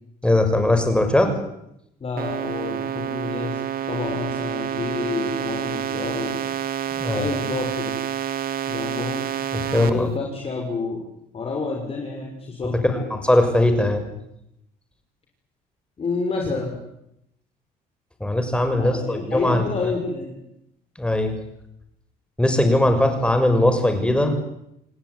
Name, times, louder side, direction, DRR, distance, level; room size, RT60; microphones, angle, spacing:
voice 1, 0.2-1.3 6.9-7.3 9.5-10.1 12.8-14.0 18.2-19.7 21.0-21.3 22.4-24.5, left 1 dB, 5° left, 7 dB, 6.5 m, -20 dB
voice 2, 2.0-3.6 3.9-6.5 7.1-8.0 8.7-9.3 9.7-11.1 11.3-13.0 16.0-16.8 18.7-20.4, left 4 dB, 35° left, 1 dB, 6.3 m, -29 dB
sound 1, 2.2-9.9, right 9 dB, 60° right, 2.4 m, -28 dB
28.5 x 18.5 x 9.7 m, 0.81 s
cardioid pair, 110°, 17 cm